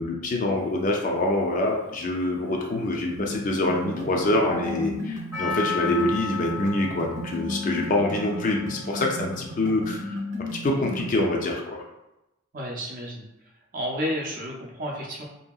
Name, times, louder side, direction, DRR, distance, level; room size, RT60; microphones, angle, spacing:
voice 1, 0.0-10.2 10.6-11.8, left 2 dB, 40° left, 0 dB, 0.4 m, -25 dB
Livestock farm animals working animals, 2.0-5.3, left 1 dB, 85° left, 0.6 m, -39 dB
sound 1, 3.2-11.2, equal, 85° right, 0.9 m, -35 dB
Percussion, 5.3-9.7 9.9-10.0, left 5 dB, 15° right, 0.9 m, -34 dB
voice 2, 12.5-13.2 13.7-15.2, equal, 40° right, -2 dB, 0.5 m, -31 dB
2.7 x 2.7 x 2.3 m, 0.94 s
head